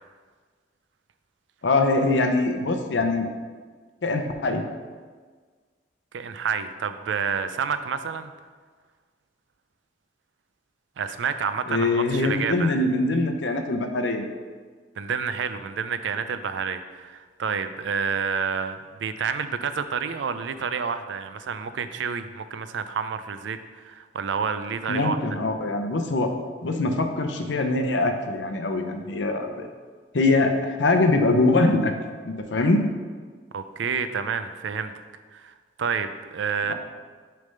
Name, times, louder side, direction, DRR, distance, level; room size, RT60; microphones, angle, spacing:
voice 1, 1.6-3.3 4.0-4.6 11.7-14.2 24.9-26.3 26.6-29.7 30.1-31.9 32.3-32.8, left 2 dB, 85° left, 5 dB, 0.6 m, -23 dB
voice 2, 6.1-8.3 11.0-12.7 15.0-25.2 33.5-34.9 35.3-36.7, right 6 dB, 85° right, 10 dB, 0.4 m, -29 dB
6.4 x 3.4 x 5.3 m, 1.5 s
head